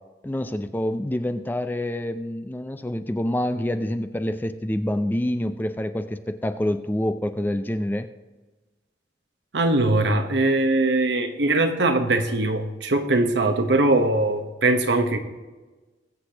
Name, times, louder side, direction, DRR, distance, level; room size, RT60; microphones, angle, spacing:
voice 1, 0.2-8.1, left 1 dB, 10° left, 9 dB, 0.4 m, -27 dB
voice 2, 9.5-15.2, right 2 dB, 70° right, 7 dB, 1.0 m, -21 dB
20.5 x 8.0 x 2.9 m, 1.2 s
head